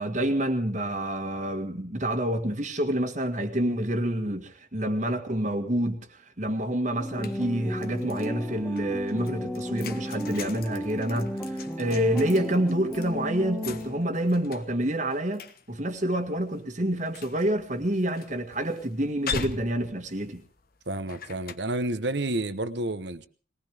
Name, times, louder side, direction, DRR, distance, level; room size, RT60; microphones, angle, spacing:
voice 1, 0.0-20.4, right 1 dB, 40° right, 1.9 m, -28 dB
sound 1, 7.0-8.3 8.8-21.6, left 5 dB, 50° left, 1.2 m, -41 dB
sound 2, 7.0-14.3, equal, 5° left, 1.7 m, -34 dB
voice 2, 20.9-23.3, right 2 dB, 60° right, 1.1 m, -30 dB
21.0 x 18.5 x 3.5 m
head